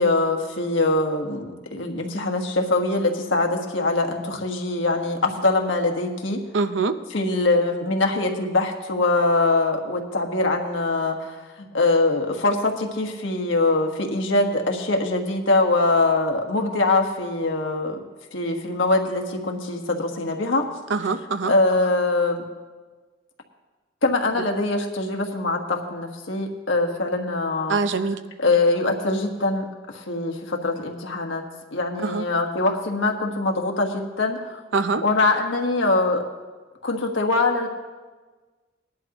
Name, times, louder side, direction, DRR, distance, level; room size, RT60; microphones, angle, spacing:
voice 1, 0.0-6.4 7.1-18.0 18.3-20.6 21.4-22.4 24.0-27.8 28.4-31.4 31.7-34.6 35.0-36.2 36.8-37.7, left 2 dB, 85° left, 3 dB, 1.4 m, -23 dB
voice 2, 6.5-7.0 20.9-21.5 27.7-28.2 32.0-32.3 34.7-35.0, right 4 dB, 75° right, 11 dB, 0.7 m, -23 dB
19.5 x 11.0 x 3.0 m, 1.3 s
head